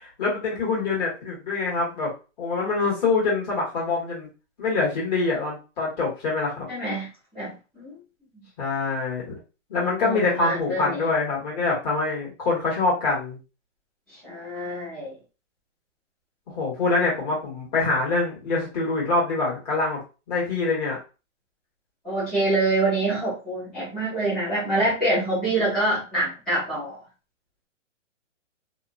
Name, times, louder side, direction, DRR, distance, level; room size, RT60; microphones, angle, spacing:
voice 1, 0.0-2.1 2.4-4.3 4.6-6.7 8.6-9.4 9.7-13.4 16.5-20.0 20.3-21.0, left 3 dB, 35° left, -5 dB, 1.5 m, -25 dB
voice 2, 6.7-7.9 10.0-11.1 14.2-15.1 22.0-27.0, right 2 dB, ahead, -14 dB, 0.4 m, -26 dB
2.8 x 2.1 x 2.5 m, 0.32 s
hypercardioid pair, 155°, 37 cm